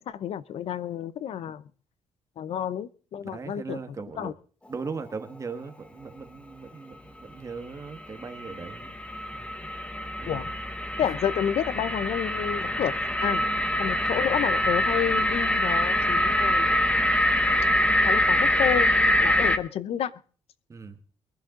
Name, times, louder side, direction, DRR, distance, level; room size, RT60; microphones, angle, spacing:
voice 1, 0.1-1.6 2.4-4.3 10.3-10.5 11.0-12.9 13.2-13.4 13.8-16.7 18.1-18.9 19.2-20.1, left 9 dB, 65° left, 17 dB, 0.8 m, -30 dB
voice 2, 3.2-4.3 4.7-8.9 9.3-9.7 10.2-10.5 20.7-21.0, right 4 dB, 30° right, 8 dB, 1.5 m, -39 dB
sound 1, 8.0-19.6, left 1 dB, 10° left, 0.9 m, -24 dB
22.5 x 11.5 x 3.9 m, 0.42 s
cardioid pair, 135°, 11 cm